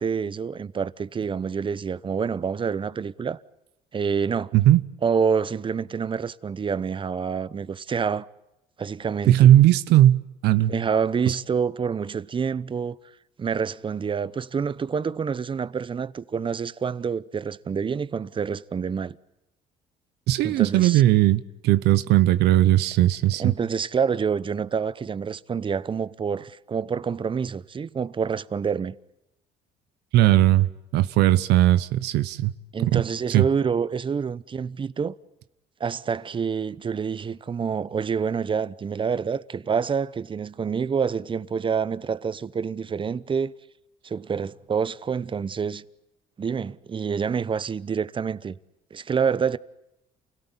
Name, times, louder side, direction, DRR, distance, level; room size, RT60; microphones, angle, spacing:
voice 1, 0.0-3.4 3.9-4.5 5.0-8.3 8.8-9.5 10.7-13.0 13.4-19.2 20.4-21.0 23.4-28.9 32.7-35.1 35.8-43.5 44.0-45.8 46.4-48.5 48.9-49.6, right 6 dB, 30° right, 0.9 m, -27 dB
voice 2, 9.3-10.7 11.3-11.4 20.3-23.5 30.1-30.7 30.9-32.5 32.8-33.0 33.3-33.5, right 13 dB, 80° right, 1.0 m, -18 dB
29.0 x 17.5 x 9.9 m
cardioid pair, 110°, 17 cm